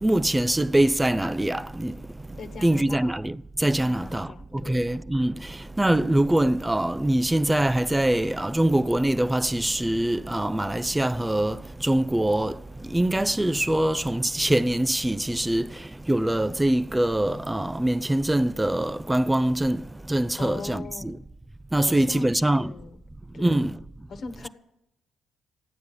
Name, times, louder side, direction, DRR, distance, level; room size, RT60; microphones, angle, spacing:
voice 1, 0.0-2.0 2.6-4.3 4.7-12.6 12.9-15.8 16.1-19.8 20.1-21.2 21.7-22.7 23.4-23.8, right 1 dB, 10° right, 0.6 m, -23 dB
voice 2, 2.4-3.1 3.9-4.8 20.3-21.1 21.8-23.0 23.3-23.7 24.1-24.5, left 4 dB, 55° left, 1.4 m, -39 dB
15.0 x 9.4 x 7.7 m
supercardioid pair, 55°, 0 cm